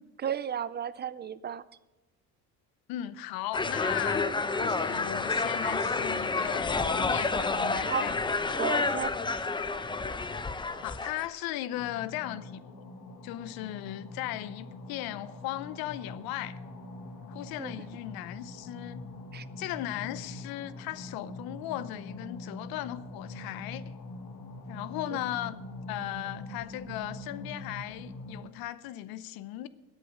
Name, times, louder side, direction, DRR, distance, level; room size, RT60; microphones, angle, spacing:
voice 1, 0.2-1.6 7.8-8.0 8.6-9.1 17.6-17.7 19.3-19.4, right 8 dB, 30° right, 0.4 m, -33 dB
voice 2, 2.9-8.2 10.8-12.8 13.2-16.6 17.3-19.0 19.6-23.8 24.7-25.6 25.9-29.7, left 14 dB, 85° left, 0.8 m, -37 dB
sound 1, 3.5-11.3, left 3 dB, 15° left, 0.6 m, -29 dB
sound 2, 11.7-28.4, left 2 dB, 60° left, 2.0 m, -44 dB
13.5 x 8.4 x 6.4 m
cardioid pair, 130°, 35 cm